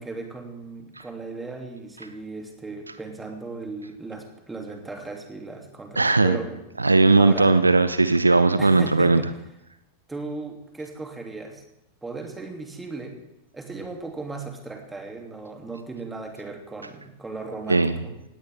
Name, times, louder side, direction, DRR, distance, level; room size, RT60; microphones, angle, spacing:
voice 1, 0.0-6.7 7.2-7.6 8.6-9.3 10.1-11.6 12.0-13.2 13.5-18.2, right 3 dB, 10° right, 3 dB, 2.9 m, -36 dB
voice 2, 6.0-6.4 6.8-9.2 17.7-17.9, right 3 dB, 80° right, 13 dB, 0.7 m, -18 dB
17.5 x 17.5 x 3.7 m, 0.88 s
figure-of-eight pair, 90°, 0 cm